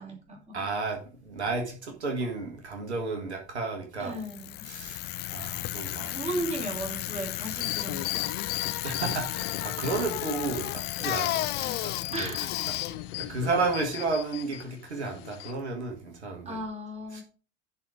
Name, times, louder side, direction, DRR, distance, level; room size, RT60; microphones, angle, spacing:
voice 1, 0.0-0.6 4.0-4.7 6.1-8.3 11.6-11.8 12.1-12.6 16.5-17.2, right 1 dB, 20° right, 3.4 m, -36 dB
voice 2, 0.5-4.2 4.6-6.2 8.8-12.4 13.2-16.6 17.1-17.2, right 3 dB, 75° right, 2.0 m, -32 dB
Bicycle, 4.1-14.2, left 16 dB, 30° left, 0.5 m, -34 dB
sound 1, 7.5-10.3 10.7-14.6 15.2-15.5, left 16 dB, 55° left, 0.9 m, -37 dB
11.5 x 4.4 x 5.1 m
figure-of-eight pair, 75°, 33 cm